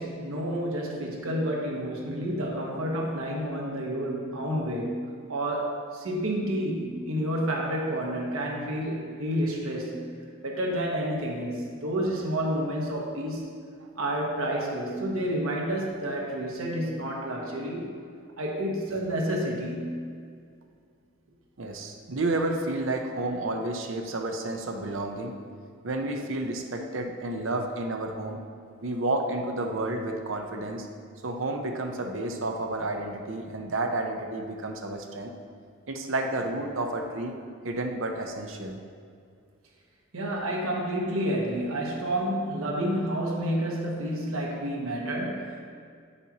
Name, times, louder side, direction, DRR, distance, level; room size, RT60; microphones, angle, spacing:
voice 1, 0.0-5.0 5.3-10.1 10.4-13.5 14.0-17.9 18.4-20.0 40.1-45.7, right 1 dB, 85° right, -1 dB, 1.3 m, -30 dB
voice 2, 21.6-25.4 25.8-28.4 28.8-30.9 31.2-35.3 35.9-37.4 37.6-38.8, right 2 dB, 65° right, 3 dB, 0.8 m, -31 dB
8.7 x 6.7 x 2.9 m, 2.2 s
head